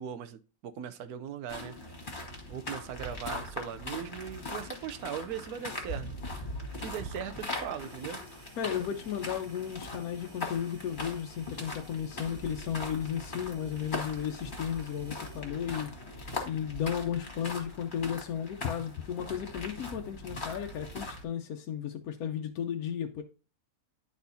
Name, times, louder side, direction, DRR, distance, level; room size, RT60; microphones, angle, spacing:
voice 1, 0.0-1.8 2.5-6.4 6.7-8.2, right 8 dB, 80° right, 1.2 m, -39 dB
sound 1, 1.5-21.2, left 2 dB, 35° left, 1.7 m, -40 dB
sound 2, 7.8-15.5, right 2 dB, 55° right, 1.8 m, -57 dB
voice 2, 8.6-15.9 16.5-23.2, left 9 dB, 75° left, 1.1 m, -34 dB
10.5 x 4.2 x 2.6 m
omnidirectional pair, 1.6 m